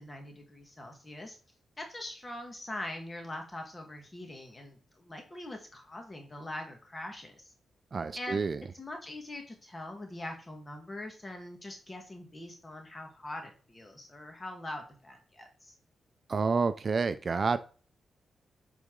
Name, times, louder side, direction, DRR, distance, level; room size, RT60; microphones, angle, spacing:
voice 1, 0.0-1.4 1.8-7.5 8.1-8.4 8.7-15.7, left 1 dB, 25° left, 3 dB, 1.6 m, -43 dB
voice 2, 7.9-8.6 16.3-17.6, right 4 dB, 40° right, 12 dB, 0.4 m, -29 dB
8.3 x 3.9 x 3.7 m, 0.38 s
wide cardioid pair, 120°, 0 cm